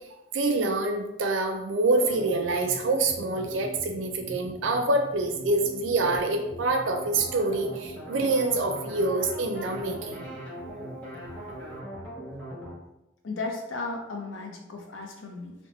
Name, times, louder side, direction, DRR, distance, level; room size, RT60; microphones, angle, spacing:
voice 1, 0.3-10.2, right 2 dB, 75° right, 4 dB, 0.4 m, -26 dB
sound 1, 1.9-12.7, right 1 dB, 5° left, 0.8 m, -40 dB
voice 2, 13.2-15.5, left 3 dB, 80° left, 1 dB, 0.6 m, -35 dB
2.8 x 2.1 x 3.0 m, 0.89 s
head